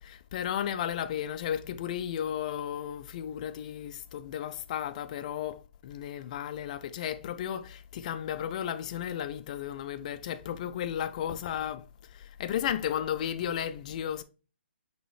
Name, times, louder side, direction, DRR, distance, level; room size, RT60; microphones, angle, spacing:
voice 1, 0.0-14.2, left 10 dB, 40° left, 0.3 m, -34 dB
5.4 x 3.0 x 3.1 m
hypercardioid pair, 155°, 6 cm